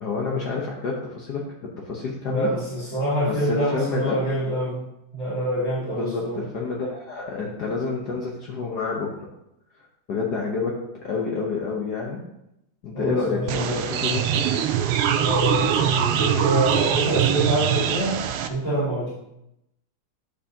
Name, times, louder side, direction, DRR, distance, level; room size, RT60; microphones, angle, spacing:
voice 1, 0.0-1.4 1.8-2.5 3.5-4.2 6.0-9.1 10.1-12.2 12.8-14.4, left 4 dB, 60° left, -2 dB, 1.4 m, -28 dB
voice 2, 2.3-4.8 5.1-6.5 12.9-14.2 15.1-18.2 18.5-19.1, right 1 dB, 35° left, -13 dB, 2.9 m, -26 dB
sound 1, 13.5-18.5, right 9 dB, 85° right, 1.5 m, -23 dB
10.0 x 5.4 x 2.8 m, 0.86 s
omnidirectional pair, 2.3 m